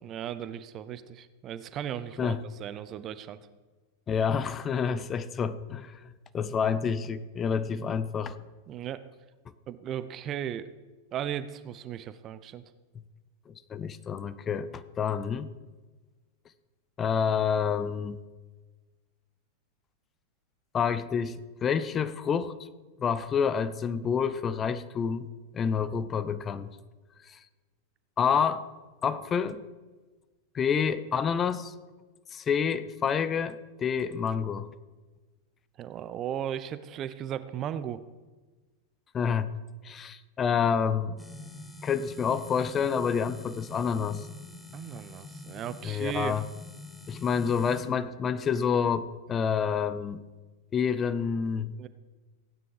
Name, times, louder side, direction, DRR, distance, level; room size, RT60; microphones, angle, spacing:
voice 1, 0.0-3.4 8.7-9.0 9.7-10.7 11.1-12.6 35.8-38.0 44.7-46.3 51.8-51.9, right 10 dB, 30° right, 14 dB, 0.7 m, -36 dB
voice 2, 4.1-8.4 13.5-15.5 17.0-18.2 20.7-21.4 21.6-22.5 23.0-25.3 25.5-26.7 27.3-27.4 28.2-28.6 29.0-29.6 30.5-31.7 32.3-34.7 39.1-39.5 39.8-41.2 41.8-44.3 45.8-46.5 47.1-50.2 50.7-51.7, left 6 dB, 25° left, 14 dB, 0.7 m, -28 dB
sound 1, 41.2-47.8, left 2 dB, 10° left, 1.7 m, -46 dB
16.0 x 9.4 x 5.0 m, 1.3 s
figure-of-eight pair, 90°, 0 cm